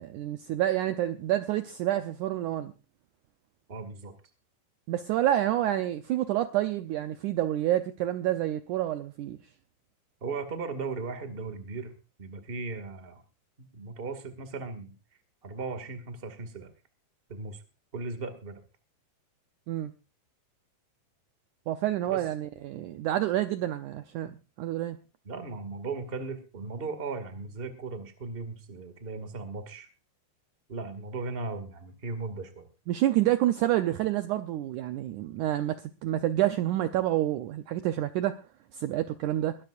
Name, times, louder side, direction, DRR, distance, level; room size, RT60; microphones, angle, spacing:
voice 1, 0.0-2.7 4.9-9.4 19.7-19.9 21.7-25.0 32.9-38.4 38.7-39.6, right 13 dB, 85° right, 1.7 m, -28 dB
voice 2, 3.7-4.1 10.2-13.2 13.7-14.9 15.4-16.7 17.3-17.6 17.9-18.6 22.1-22.2 25.2-29.9 30.7-32.7, right 4 dB, 25° right, 1.3 m, -37 dB
22.0 x 13.0 x 2.5 m
omnidirectional pair, 4.5 m